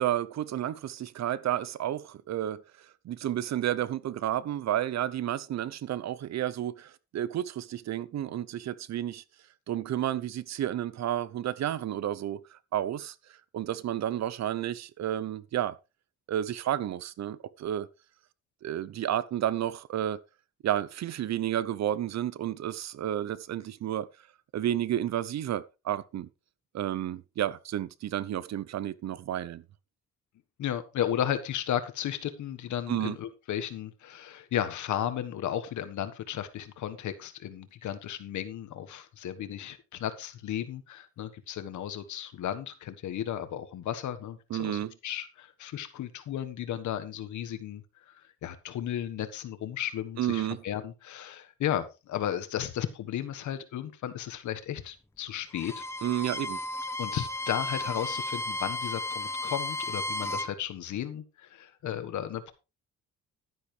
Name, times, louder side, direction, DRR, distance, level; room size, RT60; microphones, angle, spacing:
voice 1, 0.0-9.2 9.7-13.1 13.5-15.8 16.3-17.9 18.6-20.2 20.6-24.1 24.5-26.3 26.7-29.6 32.9-33.2 44.5-44.9 50.2-50.6 56.0-56.6, right 11 dB, 65° right, 0.8 m, -31 dB
voice 2, 30.6-55.8 57.0-62.5, left 10 dB, 75° left, 1.4 m, -34 dB
Bowed string instrument, 55.5-60.5, left 1 dB, 10° left, 0.9 m, -34 dB
11.5 x 10.0 x 3.3 m
cardioid pair, 90°, 30 cm